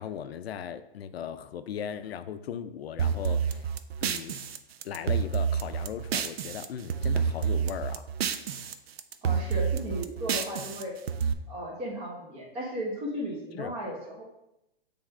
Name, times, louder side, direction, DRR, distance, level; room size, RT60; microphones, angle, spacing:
voice 1, 0.0-3.6 4.0-4.4 4.8-8.1 13.6-13.8, left 8 dB, 75° left, 11 dB, 0.5 m, -38 dB
sound 1, 3.0-6.6 6.9-8.7 9.0-11.3, right 7 dB, 70° right, 0.6 m, -29 dB
voice 2, 9.2-10.9 11.5-14.2, equal, 20° right, -3 dB, 1.2 m, -35 dB
7.7 x 3.5 x 3.5 m, 0.88 s
hypercardioid pair, 170°, 32 cm